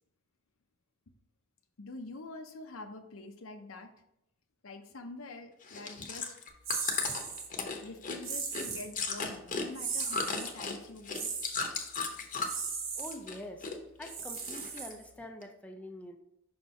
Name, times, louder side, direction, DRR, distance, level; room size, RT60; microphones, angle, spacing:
voice 1, 1.8-3.9 4.6-6.3 7.8-11.3, left 2 dB, 80° left, 7 dB, 0.7 m, -46 dB
Chewing mastication, 5.6-12.7 13.0-13.7 14.0-14.9 15.4-15.5, left 4 dB, 40° left, 0.8 m, -36 dB
sound 1, 6.7-7.5 8.2-8.9 9.7-10.5 11.1-11.6 12.4-13.2 14.0-15.2, right 5 dB, 75° right, 1.1 m, -37 dB
voice 2, 13.0-13.7 14.0-16.2, equal, 5° left, 4 dB, 0.4 m, -45 dB
5.7 x 4.4 x 4.2 m, 0.82 s
head